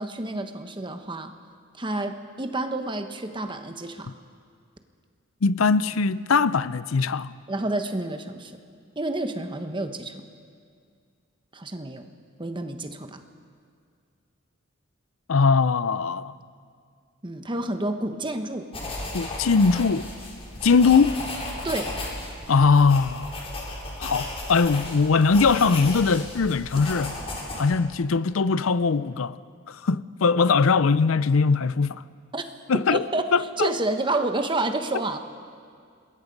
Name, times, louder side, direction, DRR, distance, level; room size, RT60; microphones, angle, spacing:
voice 1, 0.0-1.3 1.8-4.1 7.5-8.5 9.0-10.2 11.5-12.0 12.4-13.2 17.2-18.7 21.6-22.0 32.3-32.4 32.9-33.3 33.6-35.2, right 2 dB, 25° right, 1.2 m, -29 dB
voice 2, 5.4-7.3 15.3-16.3 19.1-20.1 20.6-21.2 22.5-23.3 24.0-27.1 27.6-29.4 29.7-32.0 32.7-33.0 33.3-33.8, left 4 dB, 90° left, 0.6 m, -21 dB
sound 1, 18.7-27.6, left 2 dB, 30° left, 4.4 m, -35 dB
26.5 x 21.5 x 5.3 m
head